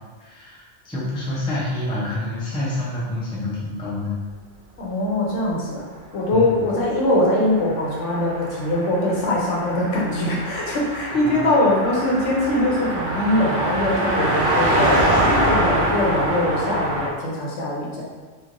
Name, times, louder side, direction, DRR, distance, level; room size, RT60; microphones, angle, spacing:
voice 1, 0.2-4.2 6.3-6.5 11.1-11.4, left 1 dB, 5° left, -8 dB, 0.3 m, -28 dB
voice 2, 4.8-5.8 6.1-15.0 15.4-18.0, left 1 dB, 70° left, -4 dB, 1.0 m, -22 dB
Car passing by, 7.0-17.1, right 1 dB, 60° right, 0.7 m, -24 dB
3.0 x 2.4 x 2.5 m, 1.4 s
omnidirectional pair, 1.3 m